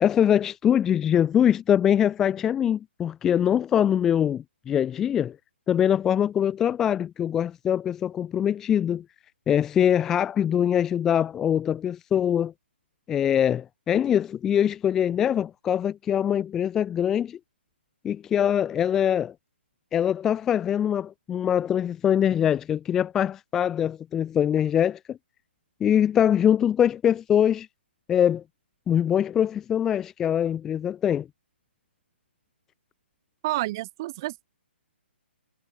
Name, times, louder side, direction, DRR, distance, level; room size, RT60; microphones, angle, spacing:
voice 1, 0.0-5.4 5.7-9.0 9.5-12.5 13.1-17.4 18.0-19.3 19.9-25.2 25.8-27.7 28.1-28.4 28.9-31.3, left 9 dB, 5° left, 0.5 m, -23 dB
voice 2, 33.4-34.5, right 18 dB, 20° right, 1.1 m, -29 dB
hypercardioid pair, 180°, 6 cm